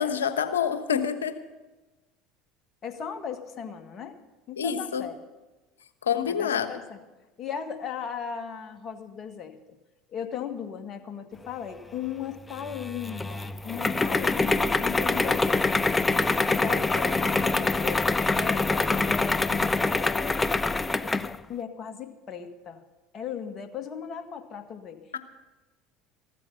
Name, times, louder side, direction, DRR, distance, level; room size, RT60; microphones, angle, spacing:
voice 1, 0.0-1.4 4.6-5.1 6.0-6.7 25.1-25.2, left 8 dB, 90° left, 10 dB, 1.1 m, -27 dB
voice 2, 2.8-4.2 4.5-5.2 6.2-7.0 7.4-9.6 10.1-15.7 16.3-20.4 21.5-22.8 23.1-25.2, left 7 dB, 40° left, 6 dB, 1.8 m, -37 dB
sound 1, 12.5-21.4, left 3 dB, 15° left, 0.6 m, -25 dB
15.5 x 12.5 x 5.7 m, 1.1 s
hypercardioid pair, 75°, 0 cm